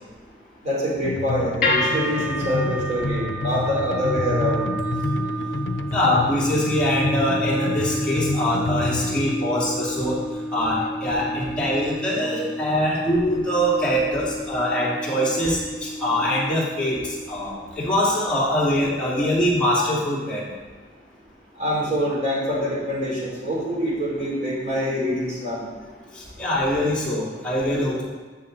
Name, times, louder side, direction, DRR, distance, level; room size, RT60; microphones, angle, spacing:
voice 1, 0.6-4.6 21.6-25.6, equal, 40° right, -5 dB, 3.5 m, -25 dB
sound 1, 1.0-9.4, left 3 dB, 75° left, 0.5 m, -29 dB
sound 2, 1.6-17.8, equal, 50° left, 3.2 m, -30 dB
voice 2, 5.9-10.2 10.5-17.0 17.3-20.5 26.4-28.0, equal, 5° left, -8 dB, 2.7 m, -23 dB
14.0 x 6.2 x 4.0 m, 1.4 s
head